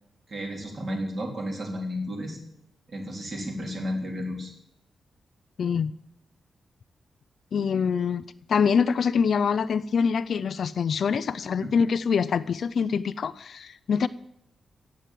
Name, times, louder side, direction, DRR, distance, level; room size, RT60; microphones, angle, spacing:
voice 1, 0.3-2.4 2.9-4.5 11.6-11.7, equal, 35° right, 1 dB, 3.6 m, -32 dB
voice 2, 5.6-5.9 7.5-8.2 8.5-14.1, left 6 dB, 50° left, 14 dB, 0.5 m, -25 dB
15.0 x 9.2 x 7.5 m, 0.79 s
wide cardioid pair, 180°, 0 cm